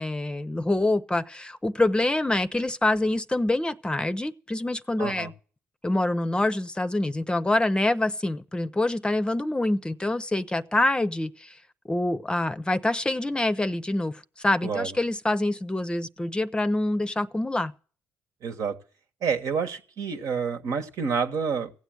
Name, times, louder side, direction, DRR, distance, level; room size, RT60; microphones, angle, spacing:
voice 1, 0.0-5.3 5.8-11.5 11.9-17.7, left 2 dB, 15° left, 0.6 m, -26 dB
voice 2, 5.0-5.3 14.6-14.9 18.4-18.8 19.2-21.7, right 6 dB, 70° right, 1.3 m, -28 dB
16.0 x 8.1 x 7.8 m
supercardioid pair, 60°, 6 cm